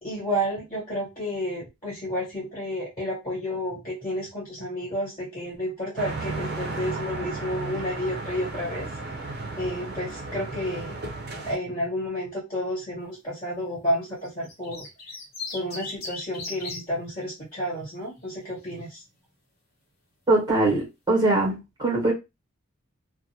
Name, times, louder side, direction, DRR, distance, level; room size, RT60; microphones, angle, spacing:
voice 1, 0.0-8.9 9.6-10.9 11.4-14.8 15.5-19.0, equal, 30° left, 1.4 m, -31 dB
sound 1, 6.0-11.6, right 3 dB, 50° right, 0.5 m, -34 dB
sound 2, 14.2-16.8 18.1-18.5, left 3 dB, 45° left, 0.8 m, -37 dB
voice 2, 20.3-22.1, right 2 dB, 20° right, 0.9 m, -22 dB
2.5 x 2.1 x 2.7 m
head